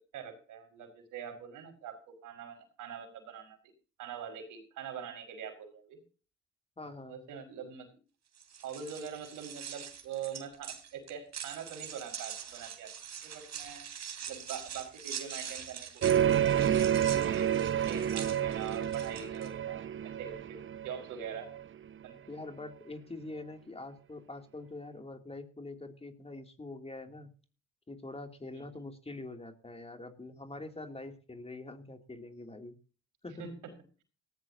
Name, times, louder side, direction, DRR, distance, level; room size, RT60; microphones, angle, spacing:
voice 1, 0.1-3.6 4.0-6.0 7.0-7.9 8.6-12.9 13.2-13.8 14.2-17.5 17.8-21.5 22.0-22.2 28.5-28.8 33.4-33.6, right 7 dB, 90° right, 7 dB, 5.1 m, -44 dB
voice 2, 6.8-7.2 22.3-27.3 27.9-32.8 33.2-33.4, left 2 dB, 20° left, 6 dB, 2.9 m, -44 dB
sound 1, 8.3-19.5, right 8 dB, 60° right, 3.1 m, -44 dB
sound 2, 16.0-21.6, right 10 dB, 40° right, 0.8 m, -29 dB
18.5 x 15.0 x 2.8 m, 0.37 s
cardioid pair, 90°, 30 cm